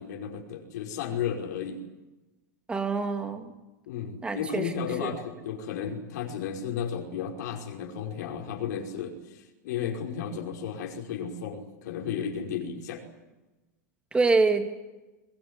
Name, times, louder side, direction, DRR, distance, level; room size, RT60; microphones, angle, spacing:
voice 1, 0.0-1.8 3.9-13.1, left 7 dB, 75° left, 2 dB, 5.3 m, -34 dB
voice 2, 2.7-3.5 4.2-4.7 5.0-5.1 14.1-14.7, right 3 dB, 10° right, 6 dB, 2.6 m, -25 dB
22.0 x 20.0 x 9.8 m, 1.1 s
supercardioid pair, 145°, 10 cm